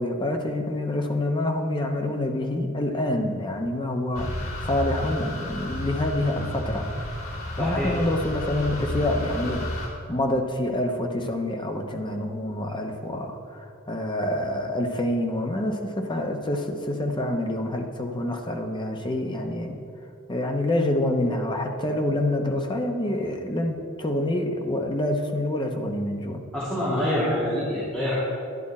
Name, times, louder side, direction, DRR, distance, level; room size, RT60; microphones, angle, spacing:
voice 1, 0.0-6.9 7.6-19.8 20.3-26.4, left 1 dB, 25° left, 3 dB, 0.8 m, -27 dB
sound 1, 4.1-9.9, left 1 dB, 85° left, 2.1 m, -32 dB
voice 2, 7.6-7.9 26.5-28.2, left 1 dB, 5° left, -11 dB, 2.4 m, -26 dB
11.0 x 10.0 x 4.2 m, 2.5 s
head